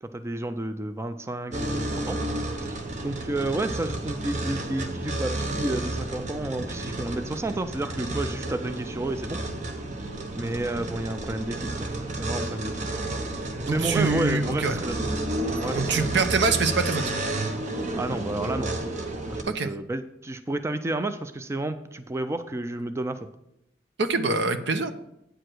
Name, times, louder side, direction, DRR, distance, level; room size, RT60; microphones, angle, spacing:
voice 1, 0.0-2.2 2.6-9.4 10.3-11.9 12.2-13.0 13.7-15.0 15.6-16.3 18.0-18.7 19.3-23.3, right 2 dB, 15° right, 10 dB, 0.4 m, -31 dB
sound 1, 1.5-19.4, right 1 dB, 40° right, 0.9 m, -31 dB
voice 2, 13.6-14.8 15.7-17.0 19.4-19.7 24.0-24.9, right 4 dB, 70° right, 9 dB, 0.7 m, -24 dB
8.9 x 4.8 x 6.1 m, 0.82 s
head